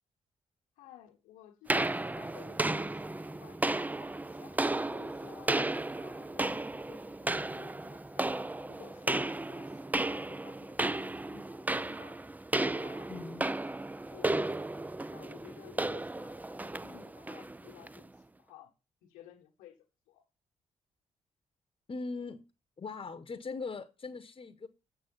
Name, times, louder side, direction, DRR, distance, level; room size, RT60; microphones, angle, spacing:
voice 1, 0.8-4.6 4.9-5.5 6.0-6.6 6.9-8.3 8.7-12.2 12.7-14.6 15.1-18.7 19.0-19.8 20.1-20.2, left 11 dB, 85° left, 1.2 m, -56 dB
sound 1, 1.7-18.0, right 2 dB, 10° right, 0.4 m, -34 dB
voice 2, 13.1-13.4 21.9-22.5 22.8-24.7, left 4 dB, 40° left, 1.0 m, -40 dB
7.1 x 6.7 x 5.3 m
hypercardioid pair, 45°, 14 cm